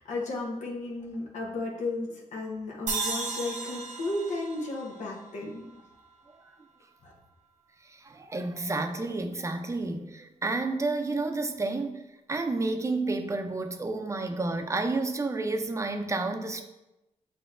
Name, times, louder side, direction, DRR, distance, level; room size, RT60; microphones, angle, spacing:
voice 1, 0.0-5.7 7.0-7.1, left 2 dB, 85° left, -3 dB, 0.9 m, -34 dB
sound 1, 2.9-6.1, right 4 dB, 85° right, 0.7 m, -35 dB
voice 2, 7.9-12.0 12.3-16.6, right 3 dB, 25° right, 6 dB, 0.5 m, -30 dB
7.5 x 2.8 x 2.4 m, 0.96 s
cardioid pair, 80°, 12 cm